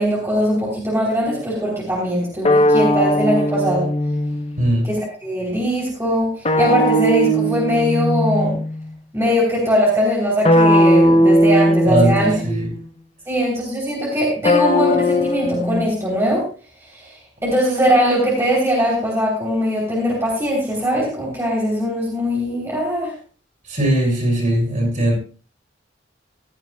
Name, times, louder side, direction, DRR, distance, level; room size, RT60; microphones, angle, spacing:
voice 1, 0.0-3.9 4.8-8.6 9.1-12.4 13.3-16.4 16.9-17.1 17.4-23.1, equal, 15° right, -4 dB, 3.3 m, -20 dB
sound 1, 2.5-4.8 6.5-8.8 10.5-12.7 14.5-15.8, equal, 35° left, 0.8 m, -17 dB
voice 2, 4.6-4.9 11.9-12.7 23.7-25.2, right 1 dB, 40° right, 2 dB, 5.9 m, -19 dB
15.5 x 14.0 x 2.3 m, 0.38 s
head